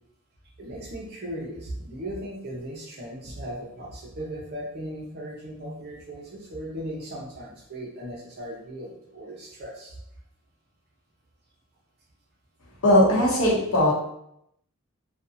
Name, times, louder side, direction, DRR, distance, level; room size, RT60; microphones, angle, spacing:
voice 1, 0.6-10.0, right 1 dB, 45° right, -3 dB, 0.7 m, -37 dB
voice 2, 12.8-13.9, left 1 dB, 75° left, -5 dB, 0.9 m, -19 dB
2.6 x 2.3 x 2.6 m, 0.76 s
head